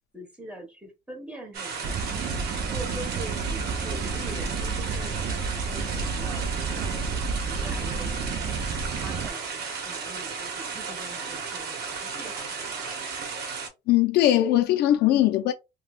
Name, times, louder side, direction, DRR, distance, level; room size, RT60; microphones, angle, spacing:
voice 1, 0.1-2.1 2.7-8.3 9.0-12.8, right 1 dB, 5° right, 1.3 m, -43 dB
sound 1, 1.5-13.7, right 5 dB, 70° right, 1.0 m, -34 dB
sound 2, 1.8-9.3, right 4 dB, 50° right, 0.4 m, -31 dB
voice 2, 13.9-15.5, left 13 dB, 70° left, 0.4 m, -20 dB
3.1 x 2.2 x 2.4 m
cardioid pair, 110°, 17 cm